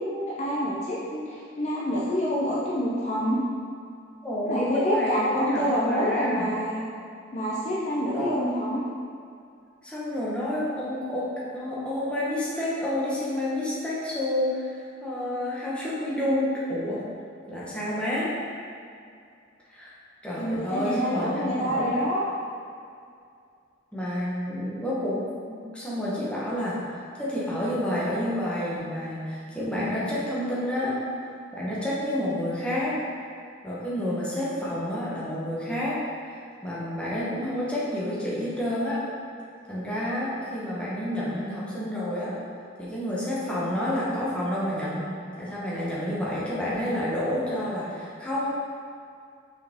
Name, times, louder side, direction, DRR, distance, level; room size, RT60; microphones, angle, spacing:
voice 1, 0.0-3.4 4.5-6.8 7.3-8.8 20.4-22.2, equal, 35° left, -7 dB, 0.7 m, -27 dB
voice 2, 4.2-6.5 8.1-8.4 9.8-17.0 17.5-18.3 19.7-19.9 20.2-21.9 23.9-31.0 31.5-32.9 33.6-36.0 36.6-39.0 39.7-42.3 42.8-48.5, left 1 dB, 5° left, -8 dB, 1.2 m, -29 dB
5.6 x 4.9 x 3.6 m, 2.4 s
head